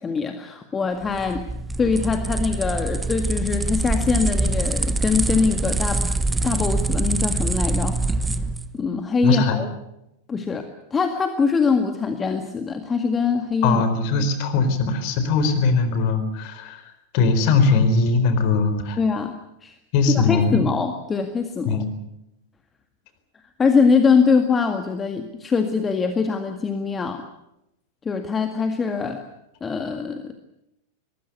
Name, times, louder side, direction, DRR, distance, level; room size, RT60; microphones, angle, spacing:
voice 1, 0.0-1.4 1.8-6.0 6.4-8.0 8.7-9.7 10.3-13.8 19.0-19.4 19.6-19.8 20.1-21.8 23.6-27.2 28.1-29.2 29.6-30.3, left 5 dB, 20° left, 6 dB, 1.9 m, -23 dB
sound 1, 1.0-8.7, right 2 dB, 10° right, 1.3 m, -24 dB
voice 2, 9.2-9.6 13.6-16.8 17.1-19.0 19.9-20.6 21.7-21.9, left 4 dB, 45° left, 10 dB, 4.1 m, -20 dB
23.0 x 20.0 x 8.1 m, 0.85 s
figure-of-eight pair, 90°, 0 cm